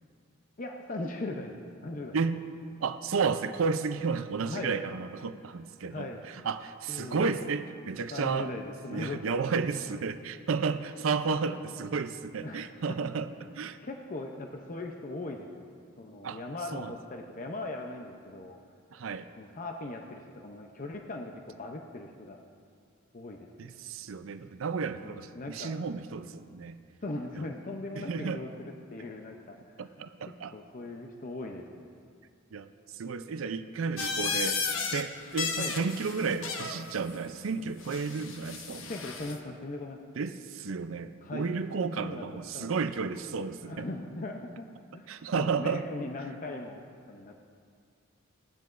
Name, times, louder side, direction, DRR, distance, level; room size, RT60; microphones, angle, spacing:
voice 1, 0.6-1.5 1.8-2.2 4.5-4.7 5.3-5.5 5.9-6.2 6.9-7.4 8.1-9.5 11.4-11.6 12.4-13.1 13.8-15.7 16.0-18.6 19.4-22.4 23.1-23.7 24.9-25.7 27.0-29.8 30.5-32.0 35.6-35.7 38.8-40.0 41.2-41.5 41.9-42.9 43.6-44.7 44.9-47.4, left 2 dB, 40° left, 2 dB, 0.6 m, -39 dB
voice 2, 2.8-6.1 6.4-8.5 8.9-13.8 16.2-16.4 16.7-16.9 18.9-19.3 23.6-26.8 28.0-28.4 29.8-30.5 32.5-32.7 33.0-38.9 40.2-43.9 45.1-45.8, right 5 dB, 80° right, 11 dB, 0.5 m, -32 dB
sound 1, 34.0-35.0 35.3-36.8 37.8-39.4, left 5 dB, 70° left, 0.9 m, -34 dB
17.0 x 10.5 x 2.5 m, 2.2 s
head